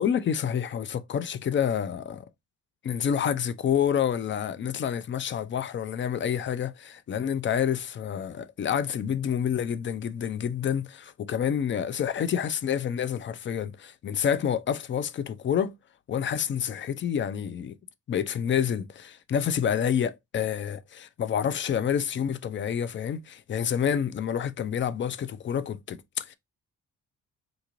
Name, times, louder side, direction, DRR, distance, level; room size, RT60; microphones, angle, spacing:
voice 1, 0.0-2.2 2.8-15.7 16.1-17.7 18.1-26.3, left 8 dB, 40° left, 0.4 m, -28 dB
3.8 x 2.4 x 2.9 m
cardioid pair, 90°, 30 cm